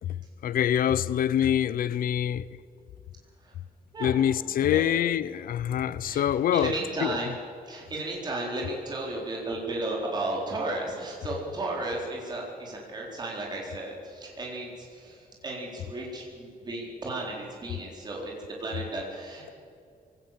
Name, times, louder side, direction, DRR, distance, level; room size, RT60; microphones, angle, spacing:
voice 1, 0.4-2.5 4.0-6.7 7.0-7.2, left 10 dB, 70° left, 0.6 m, -25 dB
voice 2, 6.0-7.3 7.7-19.5, right 2 dB, 25° right, 3.9 m, -34 dB
24.0 x 17.5 x 7.4 m
wide cardioid pair, 175°, 15 cm